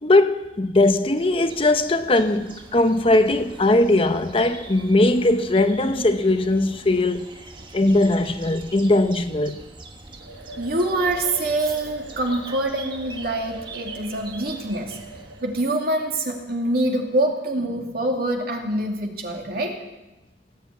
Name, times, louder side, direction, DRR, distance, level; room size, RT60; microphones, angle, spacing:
voice 1, 0.0-7.4 7.7-9.6, left 2 dB, 30° left, 0.7 m, -19 dB
sound 1, 0.8-15.7, right 3 dB, 30° right, 1.3 m, -43 dB
sound 2, 10.2-17.9, right 3 dB, 85° right, 0.9 m, -41 dB
voice 2, 10.6-15.0 15.4-19.8, right 1 dB, 60° right, 2.5 m, -25 dB
18.5 x 8.2 x 8.5 m
head